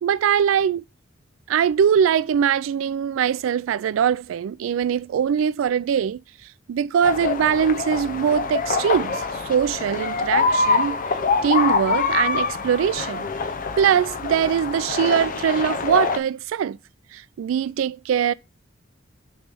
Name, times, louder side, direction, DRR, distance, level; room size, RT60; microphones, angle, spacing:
voice 1, 0.0-0.8 1.5-6.2 6.7-11.0 11.4-13.3 13.8-16.8 17.1-18.3, right 8 dB, 90° right, 0.3 m, -22 dB
sound 1, 7.0-16.2, left 4 dB, 45° left, 0.6 m, -24 dB
6.8 x 3.2 x 5.2 m
head